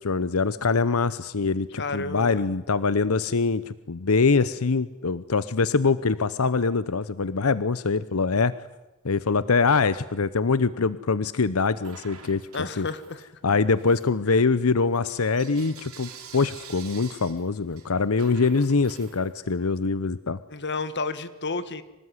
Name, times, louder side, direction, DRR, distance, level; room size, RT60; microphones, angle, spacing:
voice 1, 0.0-8.5 9.0-12.4 12.8-12.9 13.4-20.4, left 4 dB, 90° left, 16 dB, 0.8 m, -24 dB
voice 2, 1.8-2.4 12.5-13.2 20.5-21.8, left 3 dB, 55° left, 13 dB, 1.7 m, -31 dB
Bell / Coin (dropping), 11.8-13.4 13.7-19.7, right 7 dB, 85° right, 4.8 m, -47 dB
25.0 x 19.0 x 9.7 m, 1.1 s
head